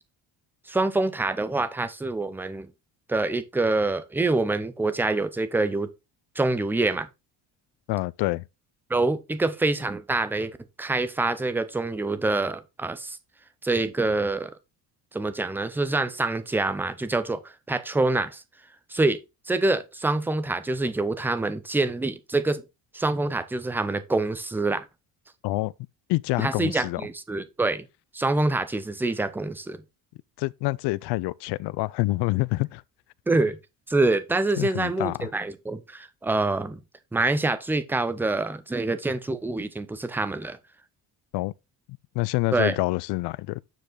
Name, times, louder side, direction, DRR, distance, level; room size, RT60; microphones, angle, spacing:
voice 1, 0.7-2.7 3.1-5.9 6.4-7.1 8.9-13.2 13.6-14.5 15.1-17.4 17.7-18.4 18.9-19.2 19.5-22.6 22.9-24.8 26.4-27.8 28.1-29.8 33.3-33.6 33.9-36.8 37.1-40.6 42.5-42.8, right 2 dB, 5° right, 0.5 m, -26 dB
voice 2, 7.9-8.5 25.4-25.7 26.1-27.0 30.4-32.8 34.6-35.3 41.3-41.5 42.1-43.6, left 21 dB, 85° left, 0.5 m, -27 dB
9.1 x 4.9 x 3.8 m
cardioid pair, 175°, 40 cm